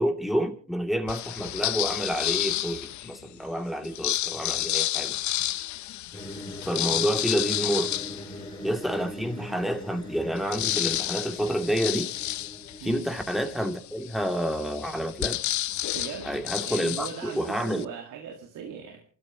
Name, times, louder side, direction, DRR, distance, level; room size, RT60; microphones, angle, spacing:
voice 1, 0.0-5.2 6.6-7.9 8.6-12.1 12.8-15.4 16.2-17.8, equal, ahead, 2.7 m, -29 dB
sound 1, 1.1-3.2 3.8-9.0 9.5-9.6 9.8-17.8, left 14 dB, 70° left, 0.6 m, -31 dB
sound 2, 6.1-12.8, equal, 15° left, 4.8 m, -41 dB
voice 2, 15.9-16.3 16.6-19.0, right 7 dB, 85° right, 2.1 m, -39 dB
28.0 x 13.0 x 3.0 m
cardioid pair, 90°, 30 cm